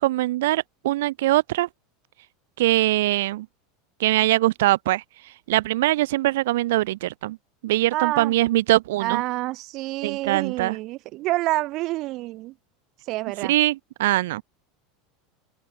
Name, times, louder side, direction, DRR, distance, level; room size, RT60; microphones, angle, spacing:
voice 1, 0.0-1.7 2.6-3.5 4.0-5.0 5.5-7.4 7.6-9.2 10.0-10.8 13.5-14.4, right 17 dB, 80° right, 2.3 m, -22 dB
voice 2, 7.9-8.4 9.0-12.5 13.1-13.5, right 18 dB, 50° right, 6.5 m, -27 dB
open air
supercardioid pair, 135°, 0 cm